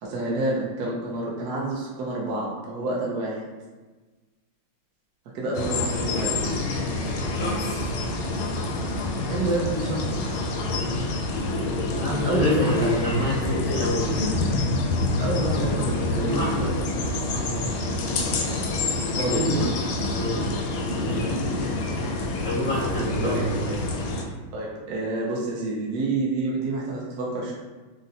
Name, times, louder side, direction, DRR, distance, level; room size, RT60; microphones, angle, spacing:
voice 1, 0.0-3.4 5.3-6.4 9.3-10.4 12.2-12.9 13.5-13.6 15.2-16.4 19.2-19.6 23.2-23.8 24.5-27.6, right 2 dB, 65° right, -4 dB, 1.0 m, -28 dB
sound 1, 5.5-24.2, left 2 dB, 85° left, 1.4 m, -27 dB
voice 2, 7.4-7.8 11.9-14.2 16.2-17.6 19.2-19.7 20.0-20.7 20.9-21.4 22.4-23.9, equal, 65° left, -9 dB, 0.7 m, -28 dB
3.9 x 2.0 x 2.7 m, 1.3 s
omnidirectional pair, 2.2 m